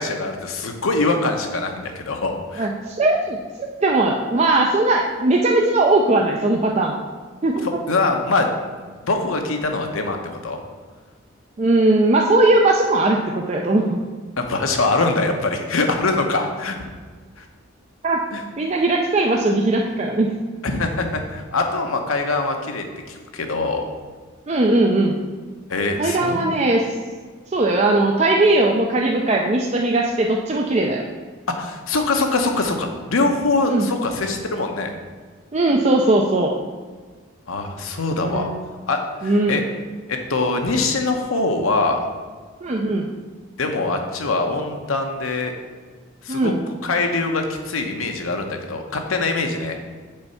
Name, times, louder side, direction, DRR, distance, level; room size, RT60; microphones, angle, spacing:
voice 1, 0.0-2.7 7.6-8.5 8.8-10.6 14.4-16.8 17.4-17.5 18.3-18.4 20.6-23.9 25.7-26.6 31.5-34.9 37.5-38.5 38.9-39.6 40.1-42.0 43.6-45.5 46.2-46.5 46.8-49.8, left 3 dB, 80° left, 4 dB, 0.9 m, -23 dB
voice 2, 2.6-3.4 3.8-7.0 7.4-7.7 11.6-14.0 18.0-18.2 18.6-20.3 24.5-25.2 26.0-26.8 27.5-31.0 33.7-33.9 35.5-36.5 38.2-38.6 39.2-39.6 42.6-43.1 46.3-46.6, right 2 dB, 30° right, 0 dB, 0.5 m, -19 dB
6.8 x 4.3 x 5.6 m, 1.5 s
head